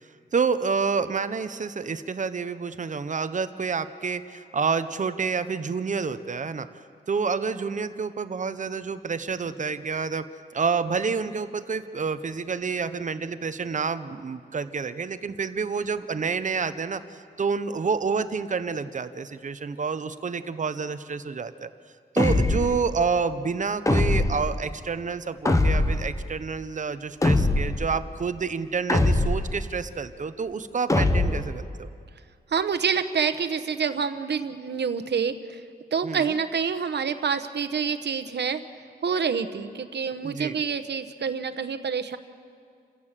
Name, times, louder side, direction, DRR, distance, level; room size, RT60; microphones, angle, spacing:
voice 1, 0.3-6.7 7.1-10.3 10.5-21.7 22.1-31.9 36.0-36.4 40.2-40.6, right 5 dB, 45° right, 12 dB, 0.8 m, -28 dB
sound 1, 22.2-22.8 23.9-24.5 25.5-26.1 27.2-27.9 28.9-29.6 30.9-31.5, left 2 dB, 20° left, 0.9 m, -22 dB
voice 2, 32.5-35.6 35.9-38.6 39.0-42.2, right 6 dB, 90° right, 11 dB, 1.0 m, -27 dB
28.5 x 16.5 x 7.5 m, 2.2 s
wide cardioid pair, 175°, 17 cm